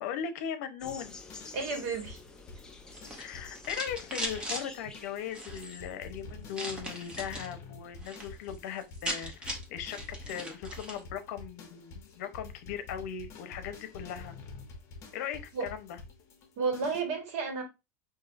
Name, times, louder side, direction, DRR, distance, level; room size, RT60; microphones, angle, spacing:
voice 1, 0.0-1.2 3.2-10.0 10.3-14.3 15.1-16.0, left 8 dB, 70° left, 0.7 m, -38 dB
sound 1, 0.8-17.0, left 3 dB, 35° left, 0.9 m, -49 dB
sound 2, 0.8-6.1, left 3 dB, 10° left, 0.4 m, -49 dB
voice 2, 1.5-2.2 15.5-15.6 16.6-17.6, right 4 dB, 65° right, 1.5 m, -32 dB
sound 3, 2.9-4.6 5.3-5.8 6.5-7.5 7.9-8.3 8.5-8.6 8.8-11.0, equal, 10° right, 0.8 m, -39 dB
5.4 x 2.7 x 2.5 m
supercardioid pair, 155°, 8 cm